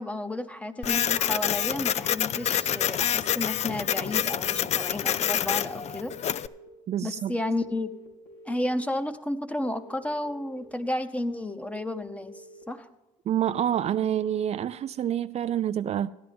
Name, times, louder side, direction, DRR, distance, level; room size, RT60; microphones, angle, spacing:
voice 1, 0.0-6.1 7.0-7.9 8.5-12.3 12.7-12.9, left 1 dB, 10° left, 1.0 m, -32 dB
Printer, 0.8-6.5, left 9 dB, 50° left, 0.4 m, -27 dB
sound 1, 1.7-2.7 3.7-4.7 5.7-6.7 7.6-8.7 9.6-10.6 11.6-12.6 13.6-14.6, right 1 dB, 85° left, 3.1 m, -49 dB
voice 2, 6.9-7.4 13.3-16.1, right 10 dB, 50° right, 0.4 m, -27 dB
15.0 x 10.5 x 3.5 m
supercardioid pair, 75°, 14 cm